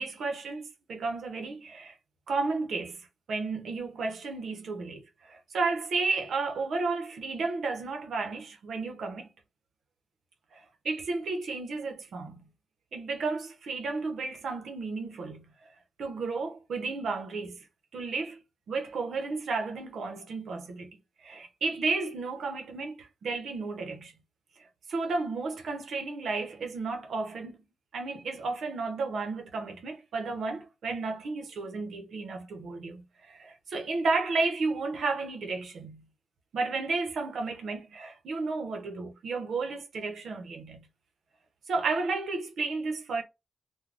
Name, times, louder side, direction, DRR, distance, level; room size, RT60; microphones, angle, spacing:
voice 1, 0.0-2.0 2.3-9.3 10.5-12.5 12.9-15.5 16.0-17.7 17.9-18.4 18.7-20.9 21.2-24.1 24.6-27.6 27.9-36.1 36.5-40.9 41.7-43.2, right 3 dB, 75° right, 0.7 m, -33 dB
2.5 x 2.2 x 3.2 m
wide cardioid pair, 160°, 0 cm